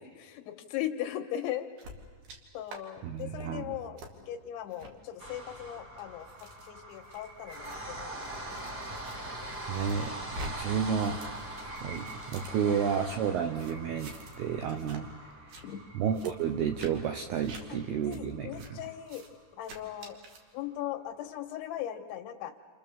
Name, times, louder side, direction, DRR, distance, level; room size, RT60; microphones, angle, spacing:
voice 1, 0.0-1.7 2.5-4.0 4.3-6.3 6.7-8.3 8.7-8.8 9.7-9.8 12.6-12.8 15.6-15.8 18.0-19.2 19.6-20.2 20.5-22.5, left 12 dB, 75° left, 6 dB, 3.2 m, -38 dB
sound 1, 1.8-2.4 2.7-2.8 3.2-3.5 4.0-4.1 4.7-4.9 5.6-9.2 9.5-10.5 10.8-13.2 13.6-14.4 14.7-15.0 15.3-15.6 16.1-16.3 16.8-16.9 17.4-17.6 18.1-18.2 18.6-18.7 19.0-19.3 19.6-20.4, right 1 dB, 55° right, 3.8 m, -47 dB
voice 2, 3.0-3.8 9.7-11.3 11.8-15.7 15.9-18.8, right 7 dB, 80° right, 6 dB, 2.3 m, -32 dB
sound 2, 5.2-19.3 19.7-19.8 20.1-20.2, right 1 dB, 35° right, 1.7 m, -43 dB
28.5 x 28.5 x 7.3 m, 1.5 s
omnidirectional pair, 5.7 m